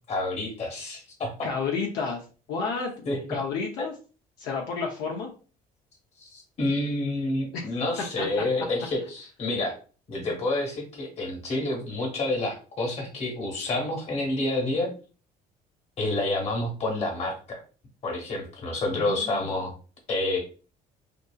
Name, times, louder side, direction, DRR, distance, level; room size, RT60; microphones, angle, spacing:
voice 1, 0.1-1.3 3.0-3.2 6.2-9.8 10.1-14.9 16.0-17.6 18.0-19.7 20.1-20.4, left 2 dB, 40° left, 1 dB, 1.2 m, -28 dB
voice 2, 1.4-2.9 3.3-3.9 4.4-5.3 7.5-7.7 8.2-8.9 19.0-19.5, left 4 dB, 85° left, 0 dB, 0.6 m, -31 dB
2.7 x 2.5 x 2.3 m, 0.36 s
cardioid pair, 110°, 16 cm